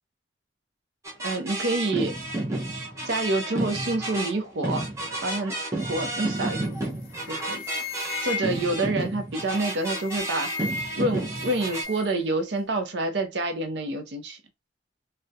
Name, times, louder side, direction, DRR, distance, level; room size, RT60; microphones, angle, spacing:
sound 1, 1.0-11.8, right 2 dB, 15° right, 0.4 m, -31 dB
voice 1, 1.2-2.2 3.1-4.8 5.2-6.6 7.3-7.6 8.2-10.5 11.0-14.4, right 2 dB, 65° right, 0.5 m, -27 dB
sound 2, 6.6-6.9 7.1-8.8 9.6-11.1 11.3-12.1, left 5 dB, 50° left, 0.5 m, -36 dB
2.3 x 2.0 x 2.7 m
head